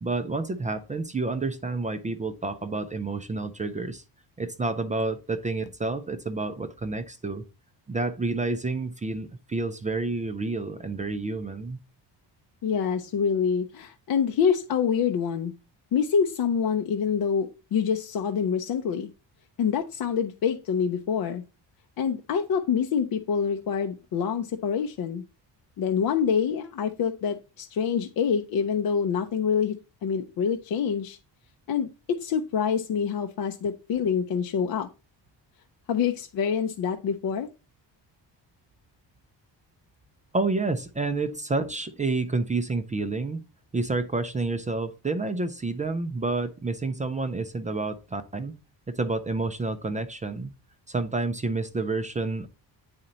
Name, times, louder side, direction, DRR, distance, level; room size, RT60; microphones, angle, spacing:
voice 1, 0.0-4.0 4.4-7.4 7.9-11.8 40.3-43.4 43.7-48.6 48.9-50.5 50.9-52.5, right 3 dB, 20° right, 0.3 m, -29 dB
voice 2, 12.6-15.5 15.9-19.1 19.6-21.4 22.0-25.2 25.8-29.8 30.0-31.2 31.7-34.9 35.9-37.5, left 7 dB, 55° left, 0.6 m, -26 dB
8.9 x 4.3 x 3.9 m
cardioid pair, 175°, 43 cm